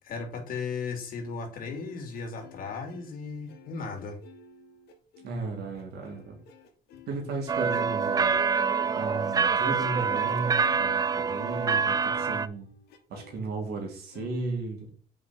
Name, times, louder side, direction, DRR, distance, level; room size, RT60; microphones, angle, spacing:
voice 1, 0.0-4.2, left 4 dB, 60° left, 2.6 m, -36 dB
sound 1, 1.7-10.3 10.6-13.4 14.1-14.3, left 7 dB, 75° left, 1.7 m, -52 dB
voice 2, 5.2-6.4 7.1-8.3 8.9-12.7 13.1-14.9, right 3 dB, 70° right, 3.2 m, -35 dB
sound 2, 7.5-12.5, right 5 dB, 20° right, 0.4 m, -26 dB
7.2 x 5.2 x 4.4 m
cardioid pair, 110°, 17 cm